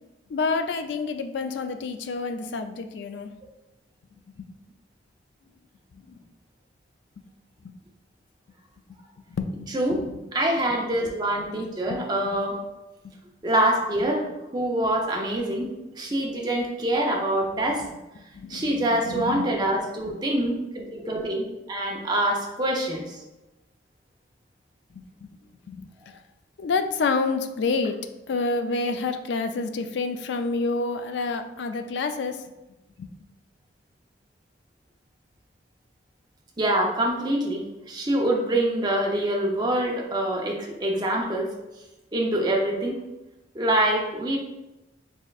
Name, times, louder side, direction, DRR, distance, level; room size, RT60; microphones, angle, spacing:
voice 1, 0.3-3.3 4.3-4.5 5.9-6.2 7.6-7.7 9.3-10.0 10.9-11.0 11.9-12.0 12.2-12.4 13.0-13.1 17.5-17.6 18.3-19.5 24.9-25.3 25.7-26.2 26.6-28.0 28.3-32.4 33.0-33.1, left 4 dB, 65° left, 8 dB, 0.3 m, -29 dB
voice 2, 10.3-12.6 13.4-14.2 14.5-15.7 16.0-17.8 18.5-23.2 36.6-41.5 42.1-43.0 43.5-44.4, right 1 dB, 20° right, 0 dB, 0.6 m, -25 dB
4.1 x 3.6 x 2.3 m, 1.0 s
head